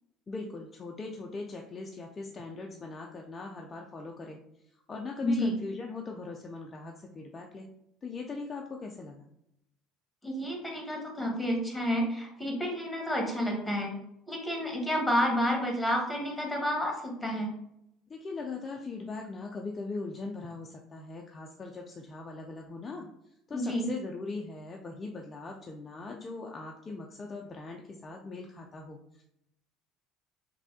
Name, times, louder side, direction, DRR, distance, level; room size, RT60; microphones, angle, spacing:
voice 1, 0.3-4.4 4.7-7.7 8.0-9.3 18.1-23.1 23.5-29.2, left 3 dB, 30° left, 0 dB, 0.4 m, -40 dB
voice 2, 5.2-5.5 10.2-13.9 14.3-17.5 23.5-23.9, equal, 5° left, 1 dB, 1.1 m, -30 dB
3.1 x 2.6 x 2.7 m, 0.81 s
hypercardioid pair, 70°, 0 cm